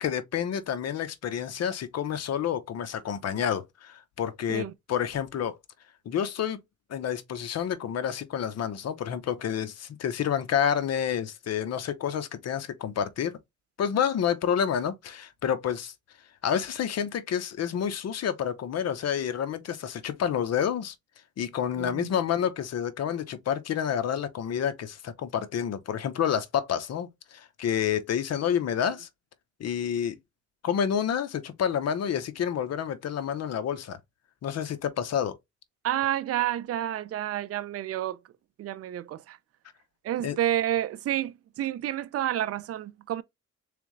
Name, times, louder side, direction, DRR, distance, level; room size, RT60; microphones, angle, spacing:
voice 1, 0.0-5.6 6.1-6.6 6.9-13.4 13.8-15.9 16.4-20.9 21.4-29.1 29.6-30.2 30.6-34.0 34.4-35.4 40.2-40.4, left 8 dB, 55° left, 0.8 m, -29 dB
voice 2, 21.8-22.1 35.8-38.2 38.6-39.4 40.0-43.2, right 12 dB, 50° right, 0.5 m, -29 dB
3.6 x 3.4 x 3.1 m
cardioid pair, 90°, 30 cm